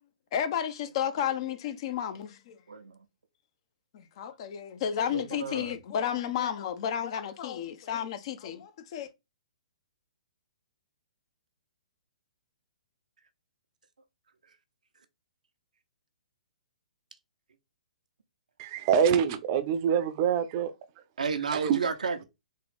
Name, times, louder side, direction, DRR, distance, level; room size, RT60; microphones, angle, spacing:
voice 1, 0.3-2.6 3.9-9.1, left 9 dB, 45° left, 0.6 m, -32 dB
voice 2, 2.7-3.1 5.1-5.7 21.2-22.2, right 5 dB, 85° right, 0.6 m, -32 dB
voice 3, 18.6-20.7 21.6-21.8, right 8 dB, 35° right, 0.6 m, -25 dB
3.7 x 2.4 x 3.4 m
hypercardioid pair, 135°, 4 cm